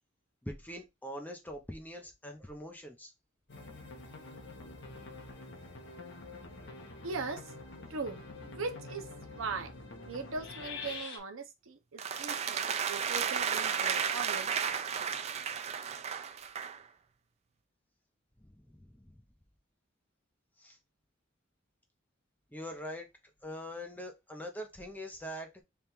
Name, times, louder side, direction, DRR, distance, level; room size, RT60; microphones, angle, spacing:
voice 1, 0.4-3.1 18.4-19.1 20.6-20.8 22.5-23.1 23.4-25.5, equal, 10° left, 0.8 m, -43 dB
sound 1, 3.5-11.2, left 3 dB, 60° left, 1.0 m, -46 dB
voice 2, 7.0-7.5 7.9-8.2 8.4-9.1 9.3-9.7 10.1-14.8, right 4 dB, 85° right, 0.7 m, -40 dB
sound 2, 12.0-16.8, right 7 dB, 35° right, 0.3 m, -33 dB
3.5 x 2.4 x 4.3 m
head